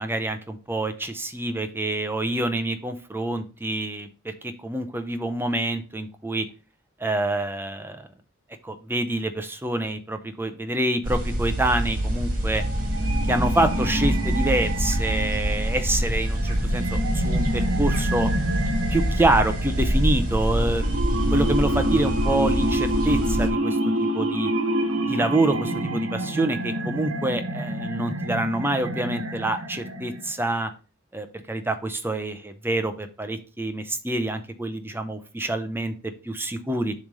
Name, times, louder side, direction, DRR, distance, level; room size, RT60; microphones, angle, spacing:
voice 1, 0.0-4.3 4.6-6.5 7.0-8.1 8.6-12.6 13.3-18.3 18.9-20.8 21.3-24.5 25.0-30.7 31.1-35.9 36.2-36.9, right 1 dB, 10° right, 8 dB, 0.6 m, -26 dB
sound 1, 11.0-23.5, equal, 45° right, 1.8 m, -25 dB
sound 2, 12.6-30.5, right 1 dB, 85° right, 1.0 m, -28 dB
7.1 x 3.2 x 5.3 m, 0.35 s
head